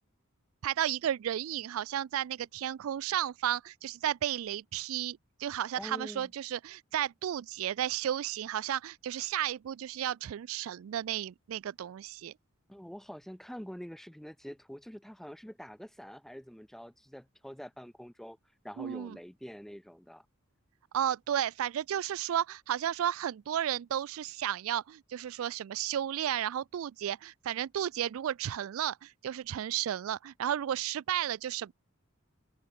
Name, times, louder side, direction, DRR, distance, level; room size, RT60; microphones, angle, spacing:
voice 1, 0.6-12.3 18.8-19.2 20.9-31.7, right 10 dB, 70° right, 0.3 m, -33 dB
voice 2, 5.7-6.3 12.7-18.4 18.6-20.2, equal, ahead, 0.7 m, -46 dB
open air
head